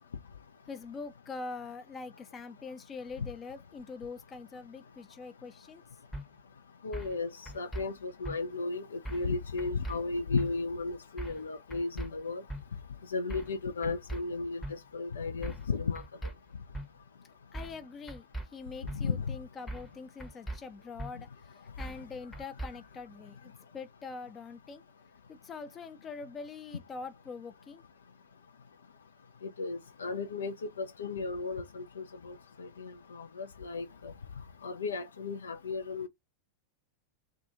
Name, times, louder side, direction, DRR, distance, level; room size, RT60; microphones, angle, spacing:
voice 1, 0.7-5.8 17.5-18.3 18.5-21.3 21.8-24.8 25.3-27.8, left 4 dB, 25° left, 0.5 m, -44 dB
sound 1, 6.1-6.2 6.9-7.2 7.5-7.8 8.2-8.4 9.0-9.3 9.6-10.0 10.4-10.5 11.2-11.4 11.7-12.1 12.5-12.6 13.3-13.5 13.8-14.2 14.6-14.7 15.4-15.7 15.9-16.3 16.7-16.9 17.5-17.8 18.1-18.5 18.9-19.0 19.7-19.9 20.2-20.6 21.0-21.1 21.8-22.0 22.3-22.7, right 1 dB, 5° left, 0.9 m, -39 dB
voice 2, 6.8-7.3 7.5-12.4 13.1-14.6 14.9-16.0 19.0-19.3 29.6-34.1 34.6-36.1, left 4 dB, 70° left, 0.5 m, -34 dB
2.4 x 2.4 x 2.8 m
figure-of-eight pair, 90°, 0 cm